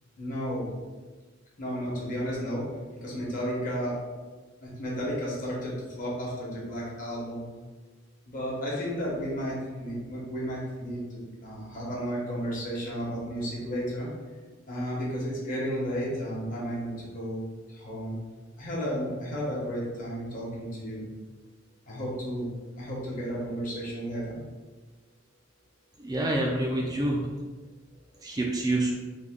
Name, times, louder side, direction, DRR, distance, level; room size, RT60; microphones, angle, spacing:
voice 1, 0.2-0.7 1.6-2.6 3.0-3.9 4.6-7.4 8.3-14.1 14.7-17.4 17.7-18.2 18.6-21.1 21.9-22.5 22.8-24.4, equal, 45° left, -5 dB, 1.1 m, -33 dB
voice 2, 26.0-27.3 28.2-28.9, right 1 dB, 20° right, -1 dB, 0.3 m, -27 dB
3.5 x 2.2 x 3.5 m, 1.3 s
head